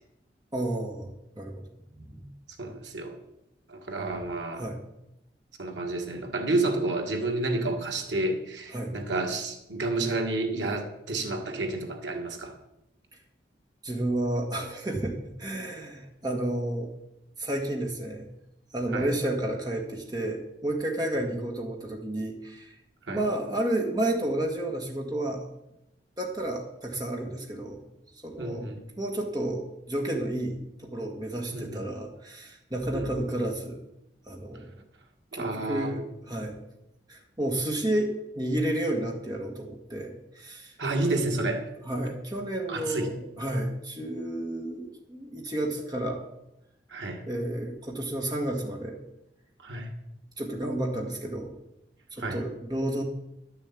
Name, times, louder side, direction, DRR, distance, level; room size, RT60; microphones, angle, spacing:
voice 1, 0.5-1.6 1.9-2.3 4.0-4.2 4.5-4.8 8.7-9.0 13.8-16.9 17.4-18.3 18.7-22.7 23.1-25.5 26.2-27.8 28.2-33.8 34.3-34.8 35.3-36.6 37.1-40.7 41.0-41.2 41.9-46.2 47.3-49.0 50.4-51.6 52.1-53.0, right 1 dB, 20° right, 1 dB, 1.6 m, -31 dB
voice 2, 2.6-3.2 3.7-4.7 5.6-12.6 18.9-19.1 23.1-23.2 28.4-28.8 31.5-31.8 32.9-33.1 35.3-36.0 40.8-41.7 42.7-43.2 46.9-47.2 49.6-49.9 52.2-52.4, right 2 dB, 85° right, 2 dB, 1.9 m, -30 dB
11.5 x 6.9 x 8.3 m, 0.87 s
head